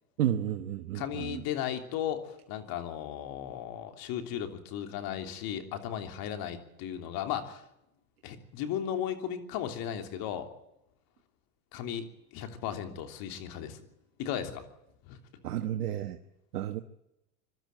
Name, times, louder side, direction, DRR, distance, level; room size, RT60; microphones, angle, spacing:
voice 1, 0.2-1.4 15.4-16.2 16.5-16.8, right 11 dB, 85° right, 1.3 m, -31 dB
voice 2, 0.9-7.6 8.2-10.5 11.7-12.0 12.3-13.8 14.2-14.6 15.1-15.2, left 10 dB, 50° left, 3.2 m, -35 dB
24.0 x 12.5 x 9.1 m
hypercardioid pair, 105°, 44 cm